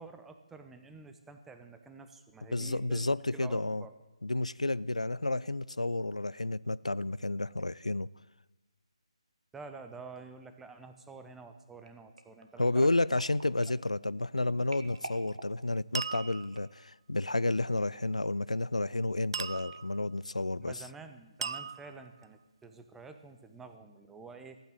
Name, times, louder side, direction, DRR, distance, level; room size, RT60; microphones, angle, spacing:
voice 1, 0.0-3.0 3.3-3.9 9.5-12.9 20.6-24.6, right 4 dB, 5° right, 0.8 m, -49 dB
voice 2, 2.5-3.8 4.2-8.1 12.6-20.8, left 2 dB, 85° left, 0.4 m, -31 dB
sound 1, 11.9-16.9 17.5-17.7 18.0-18.1, right 2 dB, 70° right, 1.9 m, -50 dB
sound 2, 14.9-15.3 15.9-16.7 19.3-20.0 21.4-22.2, right 6 dB, 45° right, 0.4 m, -38 dB
14.5 x 9.4 x 8.8 m
figure-of-eight pair, 145°, 3 cm